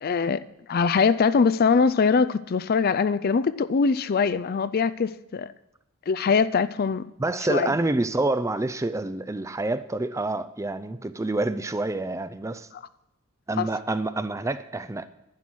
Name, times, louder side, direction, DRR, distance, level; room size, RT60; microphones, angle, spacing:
voice 1, 0.0-0.4 0.7-5.5 6.1-7.1 7.5-7.7 13.6-13.7, left 5 dB, 45° left, 0.4 m, -22 dB
voice 2, 7.2-12.7 13.5-15.1, right 2 dB, 15° right, 0.4 m, -27 dB
11.5 x 9.9 x 6.2 m
head